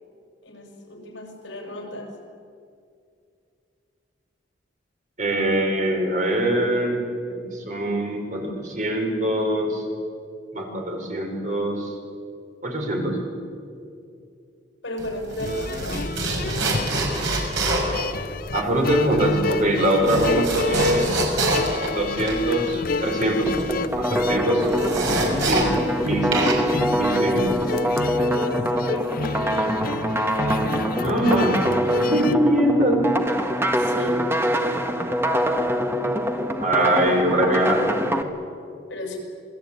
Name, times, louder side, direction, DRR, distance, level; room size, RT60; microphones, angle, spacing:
voice 1, 0.4-2.1 14.8-16.0 16.6-16.8 19.9-20.8 28.2-30.0 30.5-30.9 33.8-34.2 34.6-34.9 36.7-37.1 38.9-39.2, left 1 dB, 70° left, 2 dB, 7.0 m, -35 dB
voice 2, 5.2-7.0 7.3-9.9 10.5-11.9 12.6-13.2 18.5-21.1 21.9-23.5 23.9-24.7 24.9-25.7 26.0-26.5 26.7-27.6 31.0-31.7 32.0-33.1 36.6-38.0, right 1 dB, 45° right, 2 dB, 5.5 m, -23 dB
sound 1, 15.0-26.0 26.3-27.8, right 2 dB, 75° right, 6.2 m, -27 dB
sound 2, 15.4-32.4, left 4 dB, 50° left, 0.7 m, -30 dB
sound 3, 23.5-38.2, equal, 15° right, 1.7 m, -24 dB
28.5 x 20.5 x 9.0 m, 2.4 s
head